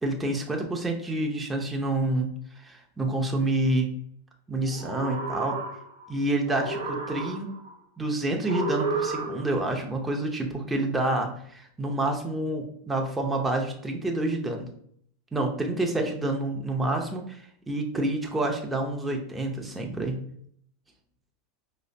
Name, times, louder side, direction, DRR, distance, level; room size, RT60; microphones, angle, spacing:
voice 1, 0.0-2.3 2.6-3.9 4.5-5.6 6.1-7.5 8.0-14.7 15.3-20.2, right 2 dB, 10° right, 1 dB, 0.6 m, -28 dB
sound 1, 4.7-6.1 6.4-7.7 8.4-9.7, right 3 dB, 70° right, 0.6 m, -32 dB
4.8 x 2.0 x 2.6 m, 0.64 s
hypercardioid pair, 95°, 0 cm